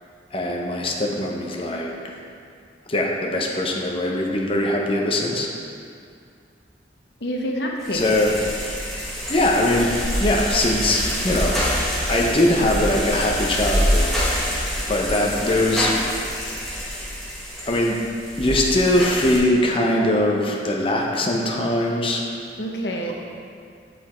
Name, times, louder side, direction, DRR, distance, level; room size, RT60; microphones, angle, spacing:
voice 1, 0.3-2.1 2.9-5.5 7.9-8.6 9.3-11.6 12.1-16.0 17.7-18.0 18.4-22.2, left 1 dB, 30° left, -1 dB, 0.8 m, -22 dB
voice 2, 7.2-8.2 22.6-23.1, equal, 70° left, 0 dB, 0.9 m, -27 dB
sound 1, 7.8-19.4, equal, ahead, 1.4 m, -26 dB
7.9 x 5.4 x 4.4 m, 2.3 s
head